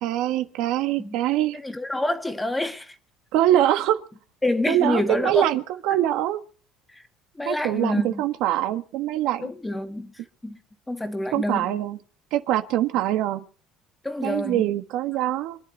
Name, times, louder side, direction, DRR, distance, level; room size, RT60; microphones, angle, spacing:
voice 1, 0.0-1.6 3.3-4.0 4.7-6.4 7.4-9.5 11.3-12.0 12.3-13.4 14.2-15.6, right 13 dB, 65° right, 1.5 m, -23 dB
voice 2, 1.5-2.9 4.4-5.5 7.4-8.2 9.4-10.1 10.4-10.6 10.9-11.8 14.0-14.7, left 1 dB, 10° left, 1.8 m, -27 dB
26.0 x 11.0 x 4.2 m
cardioid pair, 145°, 0 cm